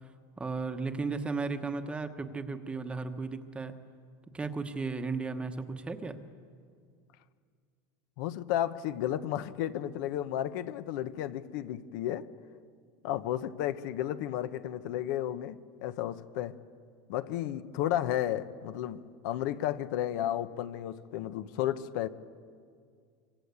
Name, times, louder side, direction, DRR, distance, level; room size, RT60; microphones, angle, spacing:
voice 1, 0.4-3.7 4.3-6.2, right 4 dB, 10° right, 7 dB, 1.1 m, -35 dB
voice 2, 8.2-12.3 13.0-16.6 17.1-22.1, left 12 dB, 60° left, 12 dB, 1.0 m, -33 dB
25.5 x 25.0 x 8.3 m, 2.1 s
supercardioid pair, 165°, 11 cm